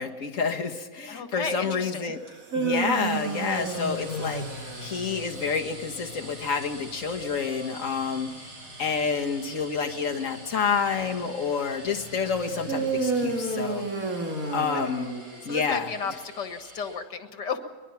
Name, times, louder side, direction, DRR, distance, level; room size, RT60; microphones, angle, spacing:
voice 1, 0.0-2.2 2.5-8.5 8.8-13.9 14.5-15.2 15.5-15.9, left 5 dB, 50° left, 3 dB, 1.9 m, -29 dB
voice 2, 1.1-2.1 12.2-12.3 14.7-14.9 15.4-17.7, left 5 dB, 80° left, 7 dB, 2.3 m, -34 dB
sound 1, 2.3-5.5 12.7-15.6, right 3 dB, 55° right, 2.7 m, -30 dB
sound 2, 2.3-16.9, equal, 75° right, 6.5 m, -45 dB
23.0 x 21.5 x 5.9 m, 1.3 s
omnidirectional pair, 1.8 m